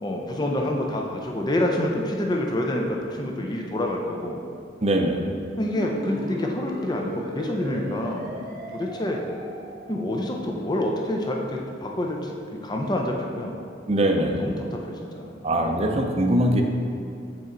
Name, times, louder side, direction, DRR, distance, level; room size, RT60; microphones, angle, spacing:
voice 1, 0.0-4.4 5.6-8.5 8.7-9.2 9.9-13.6 14.2-15.9, left 1 dB, 25° left, 1 dB, 0.5 m, -28 dB
voice 2, 4.8-5.2 13.9-14.4 15.4-16.6, right 1 dB, 35° right, 3 dB, 0.6 m, -22 dB
sound 1, 5.6-10.4, equal, 55° right, 1.0 m, -37 dB
8.0 x 4.3 x 3.8 m, 2.4 s
head